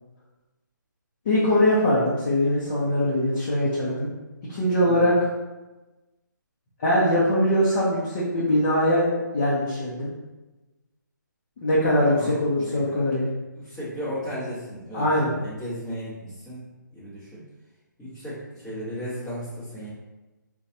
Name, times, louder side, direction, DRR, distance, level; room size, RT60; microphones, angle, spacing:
voice 1, 1.2-4.1 4.5-5.1 6.8-10.1 11.6-13.3 14.9-15.3, left 1 dB, 35° left, -7 dB, 0.7 m, -22 dB
voice 2, 12.1-13.0 13.5-16.6 16.9-17.4 18.0-19.9, equal, 5° left, -12 dB, 1.0 m, -35 dB
3.8 x 2.3 x 2.7 m, 1.1 s
hypercardioid pair, 160°, 11 cm